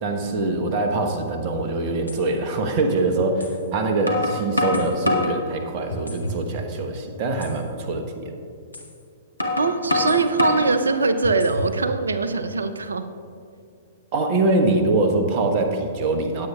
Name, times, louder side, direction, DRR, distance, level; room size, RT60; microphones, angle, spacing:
voice 1, 0.0-8.3 14.1-16.5, right 2 dB, 40° right, 4 dB, 1.1 m, -23 dB
sound 1, 1.5-1.6 2.1-2.2 3.4-3.5 4.1-5.4 5.9-6.4 6.8-6.9 7.4-7.6 8.7-8.9 9.4-10.7 11.2-11.8, left 2 dB, 85° left, 1.2 m, -25 dB
voice 2, 9.6-13.1, right 3 dB, 70° right, 10 dB, 0.6 m, -22 dB
19.0 x 8.0 x 2.4 m, 2.4 s
figure-of-eight pair, 110°, 0 cm